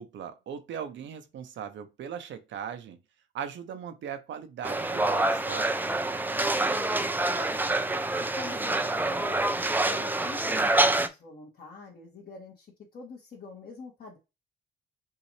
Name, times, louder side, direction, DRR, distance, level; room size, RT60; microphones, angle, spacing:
voice 1, 0.0-3.0 3.3-5.7, right 8 dB, 70° right, 0.8 m, -39 dB
sound 1, 4.6-11.1, right 2 dB, 10° right, 0.5 m, -26 dB
voice 2, 6.5-7.7 8.3-14.2, left 3 dB, 50° left, 1.8 m, -46 dB
5.6 x 2.7 x 3.2 m
cardioid pair, 90°, 20 cm